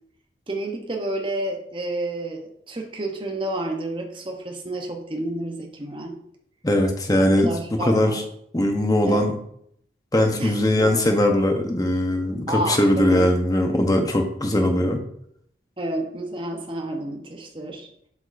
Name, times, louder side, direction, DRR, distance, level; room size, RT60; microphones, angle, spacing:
voice 1, 0.5-6.2 7.4-8.2 9.0-9.3 10.4-10.9 12.5-13.3 14.6-14.8 15.8-17.9, right 1 dB, 25° right, 2 dB, 0.8 m, -30 dB
voice 2, 6.6-7.5 7.8-8.2 8.5-9.3 10.1-15.0, left 1 dB, 20° left, 4 dB, 0.8 m, -20 dB
7.7 x 5.2 x 2.5 m, 0.70 s
head